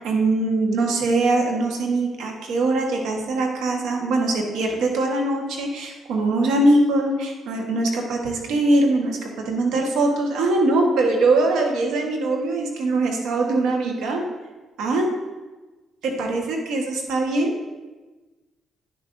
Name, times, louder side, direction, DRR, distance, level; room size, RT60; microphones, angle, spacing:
voice 1, 0.0-14.2 14.8-15.1 16.0-17.5, right 2 dB, 85° right, 2 dB, 1.3 m, -22 dB
9.9 x 6.8 x 2.6 m, 1.2 s
cardioid pair, 90°, 0 cm